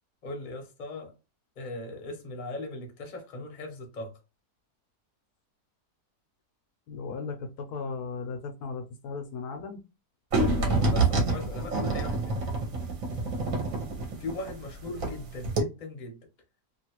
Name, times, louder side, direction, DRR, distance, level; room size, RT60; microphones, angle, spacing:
voice 1, 0.2-1.1 1.6-4.2 10.5-12.4 14.2-16.2, left 2 dB, 40° left, 0.8 m, -38 dB
voice 2, 6.9-9.8, left 4 dB, 75° left, 1.1 m, -36 dB
sound 1, 10.3-15.2 15.4-15.6, right 3 dB, 60° right, 1.2 m, -27 dB
2.9 x 2.5 x 2.9 m
omnidirectional pair, 1.7 m